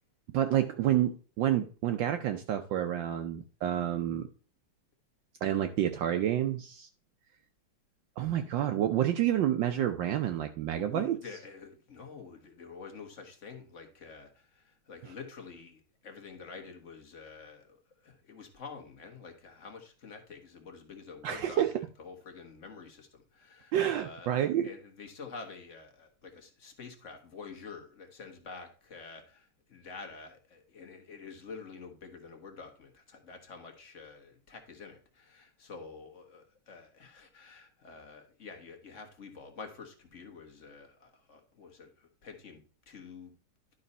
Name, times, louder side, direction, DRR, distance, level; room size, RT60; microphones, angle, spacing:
voice 1, 0.3-4.3 5.4-6.9 8.2-11.2 21.2-21.7 23.7-24.7, right 11 dB, 70° right, 7 dB, 1.3 m, -29 dB
voice 2, 10.7-21.6 22.0-24.3 24.6-43.3, left 5 dB, 40° left, 4 dB, 1.7 m, -48 dB
11.5 x 4.1 x 5.4 m, 0.38 s
omnidirectional pair, 2.3 m